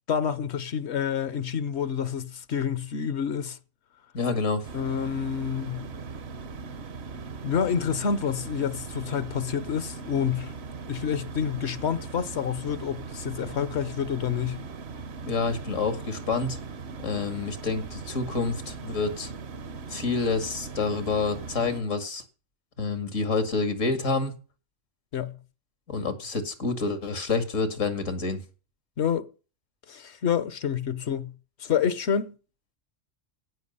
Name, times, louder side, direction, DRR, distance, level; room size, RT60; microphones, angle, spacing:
voice 1, 0.1-3.6 4.7-5.9 7.4-10.5 10.9-14.6 25.1-25.4 29.0-29.3 29.9-31.3 31.6-32.4, left 7 dB, 65° left, 1.1 m, -28 dB
voice 2, 4.1-4.7 15.2-16.6 17.0-19.3 19.9-22.2 22.8-24.3 25.9-28.4, left 4 dB, 85° left, 2.3 m, -28 dB
sound 1, 4.6-21.8, right 4 dB, 60° right, 1.1 m, -39 dB
17.0 x 5.8 x 5.5 m
omnidirectional pair, 1.3 m